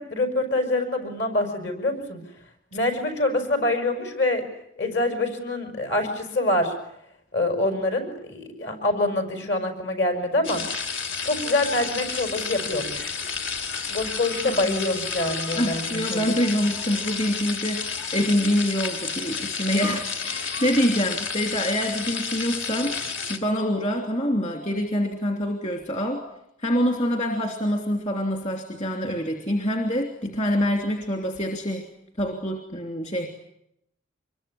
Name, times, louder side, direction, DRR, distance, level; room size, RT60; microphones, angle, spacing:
voice 1, 0.0-2.2 2.7-4.4 4.8-6.7 7.3-10.6 11.2-13.1 13.9-16.2, left 2 dB, 60° left, 7 dB, 6.1 m, -25 dB
sound 1, 10.4-23.4, left 5 dB, 80° left, 3.3 m, -31 dB
voice 2, 14.4-14.8 15.5-23.0 23.3-26.2 26.6-31.9 32.2-33.3, equal, 35° left, 3 dB, 3.0 m, -25 dB
25.5 x 23.0 x 9.9 m, 0.78 s
head